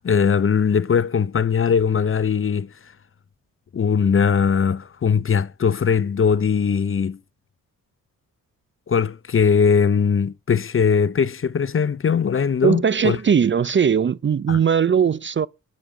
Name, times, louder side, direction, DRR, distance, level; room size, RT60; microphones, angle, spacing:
voice 1, 0.0-2.7 3.7-7.2 8.9-13.2 14.5-14.6, left 6 dB, 35° left, 0.7 m, -20 dB
voice 2, 12.6-15.5, right 7 dB, 35° right, 0.5 m, -19 dB
11.5 x 5.2 x 7.7 m
cardioid pair, 60°, 35 cm